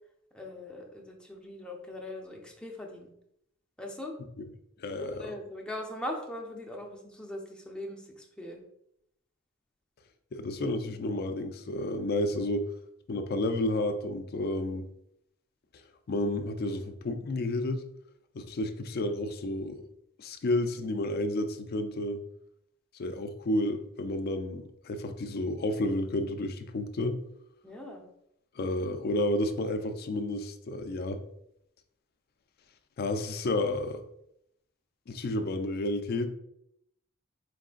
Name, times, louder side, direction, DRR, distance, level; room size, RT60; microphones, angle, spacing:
voice 1, 0.3-3.1 3.8-4.2 4.9-8.6 27.6-28.0, left 1 dB, 5° left, 0 dB, 0.6 m, -40 dB
voice 2, 4.8-5.1 10.3-12.7 13.1-14.9 16.1-17.8 18.3-19.8 20.2-22.2 22.9-27.2 28.6-31.2 33.0-34.0 35.1-36.3, left 1 dB, 50° left, 8 dB, 0.4 m, -31 dB
4.6 x 3.7 x 2.4 m, 0.76 s
head